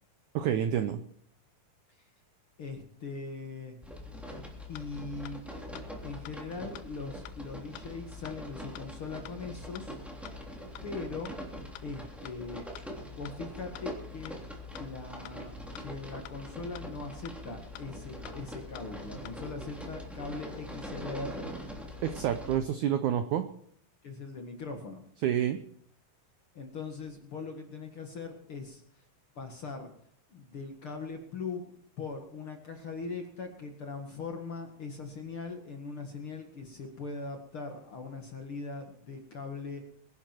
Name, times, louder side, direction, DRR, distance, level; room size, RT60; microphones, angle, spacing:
voice 1, 0.3-1.0 22.0-23.5 25.2-25.6, right 10 dB, 90° right, 9 dB, 1.7 m, -28 dB
voice 2, 2.6-3.8 4.7-5.4 6.0-10.0 10.8-11.3 11.8-12.7 13.0-14.4 14.7-15.5 15.8-21.5 24.0-25.0 26.5-29.0 29.4-29.9 30.3-39.8, left 4 dB, 45° left, 3 dB, 1.9 m, -40 dB
sound 1, 3.8-22.6, left 1 dB, ahead, 2.3 m, -43 dB
sound 2, 4.3-4.4 4.7-4.9 5.2-5.4 5.7-5.9 6.2-6.4 6.7-6.9 7.2-7.4 7.7-7.9 8.2-8.4 8.7-8.9 9.2-9.4 9.7-9.9 10.2-10.4 10.7-10.9 11.2-11.4 11.7-11.9 12.2-12.4 12.7-12.9 13.2-13.4 13.7-13.9 14.2-14.4 14.7-14.9 15.2-15.4 15.7-15.9 16.2-16.4 16.7-16.9 17.2-17.4 17.7-17.9 18.2-18.4 18.7-18.9 19.2-19.4, left 14 dB, 85° left, 2.8 m, -47 dB
22.5 x 11.0 x 4.5 m, 0.65 s
omnidirectional pair, 4.7 m